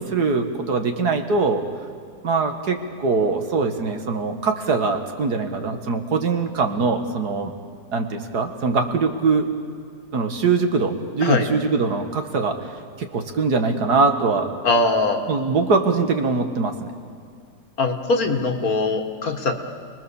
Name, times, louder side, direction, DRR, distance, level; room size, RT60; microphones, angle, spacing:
voice 1, 0.0-1.6 2.2-7.5 7.9-9.5 10.1-12.7 13.0-14.5 15.3-16.9, right 4 dB, 65° right, 6 dB, 2.1 m, -22 dB
voice 2, 14.6-15.2 17.8-19.6, left 3 dB, 55° left, 5 dB, 2.1 m, -21 dB
29.0 x 20.5 x 7.1 m, 2.2 s
omnidirectional pair, 1.9 m